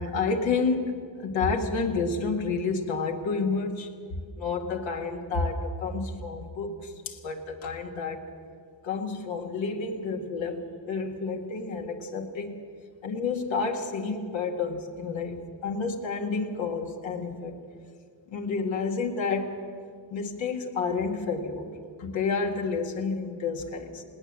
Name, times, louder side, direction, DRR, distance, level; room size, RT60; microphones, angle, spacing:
voice 1, 0.0-3.9 4.4-8.2 8.8-12.6 13.0-17.6 18.3-19.6 20.1-24.0, left 4 dB, 85° left, 2 dB, 2.2 m, -30 dB
20.0 x 18.0 x 7.7 m, 2.1 s
cardioid pair, 110°, 44 cm